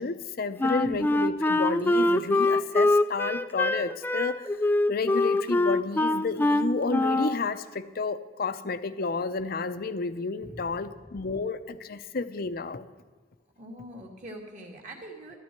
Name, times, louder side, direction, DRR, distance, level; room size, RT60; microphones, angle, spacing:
voice 1, 0.0-4.6 4.9-12.9, left 4 dB, 55° left, 12 dB, 0.6 m, -31 dB
Wind instrument woodwind instrument, 0.6-7.4, left 2 dB, 10° left, 0.3 m, -24 dB
voice 2, 0.8-1.2 10.4-11.2 13.6-15.4, equal, 45° right, 0 dB, 2.2 m, -43 dB
13.5 x 12.5 x 4.5 m, 1.4 s
head